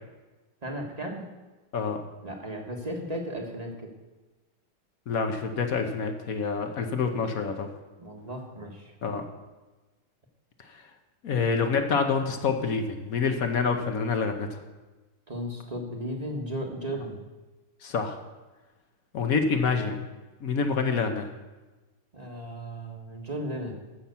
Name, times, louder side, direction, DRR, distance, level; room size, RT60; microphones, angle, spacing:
voice 1, 0.6-1.3 2.2-3.9 8.0-8.9 15.3-17.2 22.1-23.7, equal, 20° right, 0 dB, 1.4 m, -35 dB
voice 2, 5.1-7.7 9.0-9.2 11.2-14.6 17.8-18.2 19.1-20.0 20.4-21.3, left 5 dB, 55° left, 6 dB, 1.1 m, -27 dB
14.5 x 5.9 x 6.9 m, 1.2 s
omnidirectional pair, 2.3 m